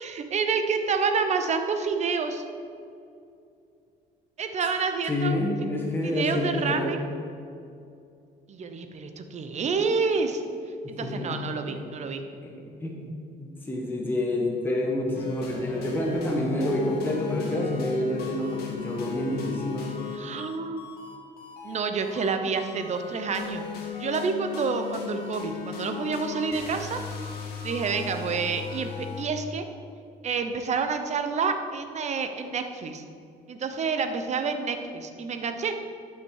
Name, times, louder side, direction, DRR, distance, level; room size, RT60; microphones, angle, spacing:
voice 1, 0.0-2.4 4.4-5.4 6.0-7.0 8.5-10.4 10.9-12.2 20.1-20.9 21.6-23.6 24.0-27.0 27.6-29.7 30.2-33.0 33.5-35.7, right 5 dB, 40° right, 7 dB, 0.9 m, -28 dB
voice 2, 5.1-7.0 10.8-11.4 11.7-11.8 12.4-12.5 12.8-13.1 13.4-19.9, left 1 dB, 10° left, -2 dB, 1.3 m, -28 dB
sound 1, 15.1-29.2, left 6 dB, 70° left, 1.8 m, -37 dB
11.5 x 5.8 x 4.8 m, 2.5 s
cardioid pair, 110°, 17 cm